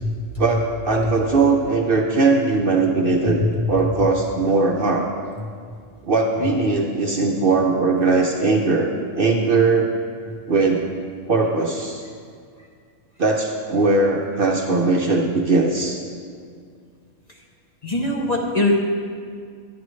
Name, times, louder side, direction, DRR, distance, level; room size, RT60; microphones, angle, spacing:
voice 1, 0.4-3.4 3.7-5.1 6.0-9.9 10.5-10.8 11.3-12.0 13.2-16.0, right 3 dB, 50° right, 1 dB, 0.8 m, -19 dB
voice 2, 17.8-18.8, left 2 dB, 35° left, -1 dB, 0.8 m, -21 dB
11.5 x 9.4 x 3.1 m, 2.1 s
omnidirectional pair, 1.4 m